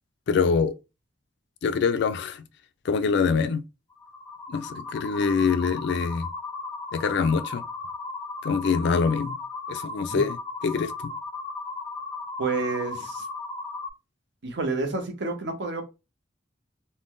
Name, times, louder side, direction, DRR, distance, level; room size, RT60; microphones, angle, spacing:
voice 1, 0.3-0.7 1.6-2.4 2.8-3.6 4.5-6.3 6.9-7.6 8.4-9.4 9.7-10.4 10.6-11.1, left 5 dB, 65° left, 0.3 m, -24 dB
sound 1, 3.9-13.9, left 3 dB, 15° left, 0.6 m, -36 dB
voice 2, 12.4-13.3 14.4-15.8, right 3 dB, 65° right, 0.7 m, -29 dB
2.5 x 2.1 x 3.5 m
head